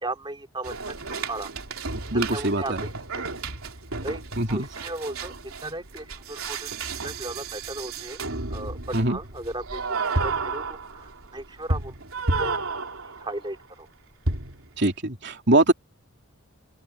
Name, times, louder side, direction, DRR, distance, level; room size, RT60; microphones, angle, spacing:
voice 1, 0.0-1.0 1.3-1.5 1.8-3.2 4.0-4.2 4.5-8.2 8.5-12.0 12.4-12.6 13.2-13.9, right 2 dB, 20° right, 3.4 m, -36 dB
sound 1, 0.6-13.4 14.3-14.7, right 3 dB, 75° right, 3.5 m, -32 dB
voice 2, 2.1-2.8 4.4-4.7 8.9-9.2 14.8-15.7, right 1 dB, 50° right, 3.3 m, -22 dB
open air
head